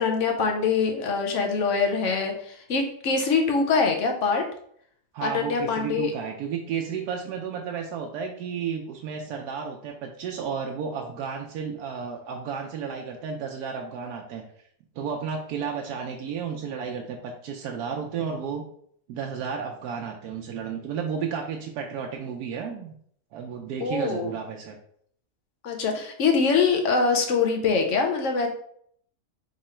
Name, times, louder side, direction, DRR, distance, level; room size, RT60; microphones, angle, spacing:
voice 1, 0.0-4.4 5.2-6.1 23.8-24.3 25.6-28.5, left 5 dB, 60° left, 3 dB, 1.0 m, -24 dB
voice 2, 5.1-14.4 15.0-18.6 19.1-22.9 23.3-24.8, right 6 dB, 90° right, 1 dB, 1.1 m, -32 dB
3.8 x 3.1 x 4.3 m, 0.64 s
omnidirectional pair, 1.6 m